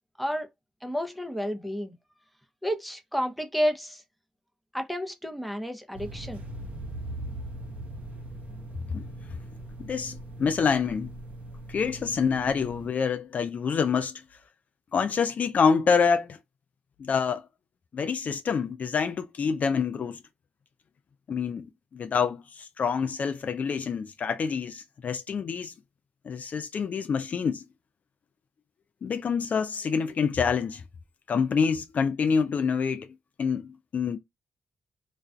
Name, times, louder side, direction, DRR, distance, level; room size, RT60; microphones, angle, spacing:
voice 1, 0.8-2.0 2.6-4.0 4.7-6.4, equal, ahead, 0.6 m, -30 dB
sound 1, 5.9-12.9, right 1 dB, 55° right, 0.7 m, -40 dB
voice 2, 9.8-11.1 11.7-14.2 14.9-16.4 17.0-17.5 17.9-20.2 21.3-25.7 26.2-27.7 29.0-30.8 31.3-33.1 33.4-34.2, left 6 dB, 55° left, 0.3 m, -27 dB
2.4 x 2.2 x 2.4 m
supercardioid pair, 45°, 3 cm